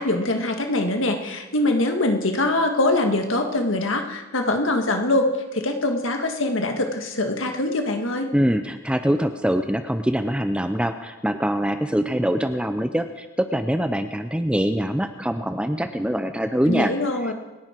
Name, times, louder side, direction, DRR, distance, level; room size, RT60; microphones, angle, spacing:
voice 1, 0.0-8.3 16.7-17.3, left 2 dB, 65° left, 4 dB, 1.9 m, -23 dB
voice 2, 8.3-16.9, equal, 5° right, 8 dB, 0.6 m, -24 dB
27.0 x 11.0 x 4.5 m, 1.2 s
head